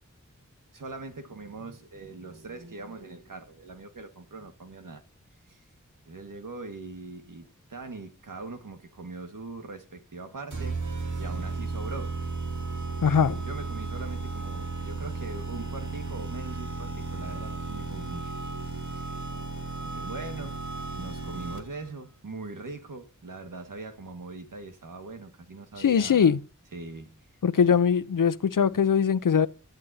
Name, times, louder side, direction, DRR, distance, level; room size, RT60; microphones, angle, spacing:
voice 1, 0.7-5.0 5.4-5.6 6.1-12.2 13.5-18.3 18.6-19.0 19.8-20.6 20.9-26.4 26.7-27.2 27.6-27.8, right 3 dB, 85° right, 1.9 m, -41 dB
sound 1, 10.5-21.9, right 3 dB, 65° right, 3.0 m, -34 dB
voice 2, 13.0-13.4 25.8-26.4 27.4-29.5, left 7 dB, 85° left, 0.8 m, -21 dB
24.5 x 13.0 x 2.9 m
wide cardioid pair, 55°, 31 cm